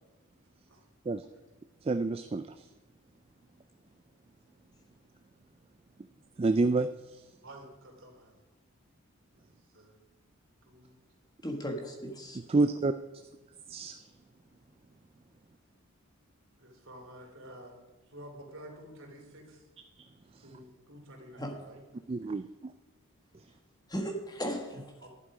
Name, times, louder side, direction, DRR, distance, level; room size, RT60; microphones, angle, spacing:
voice 1, 1.8-2.7 6.4-7.2 12.5-12.9 13.7-14.0 22.1-22.7, right 3 dB, 25° right, 10 dB, 0.3 m, -28 dB
voice 2, 7.4-8.3 9.4-9.5 9.7-10.0 10.6-11.0 16.6-17.8 18.1-19.6 20.4-21.8 25.0-25.1, right 1 dB, 60° right, 1 dB, 3.3 m, -50 dB
voice 3, 11.4-12.4 21.4-21.6 23.9-25.1, equal, 15° left, 3 dB, 1.5 m, -36 dB
11.5 x 11.0 x 4.9 m, 1.2 s
head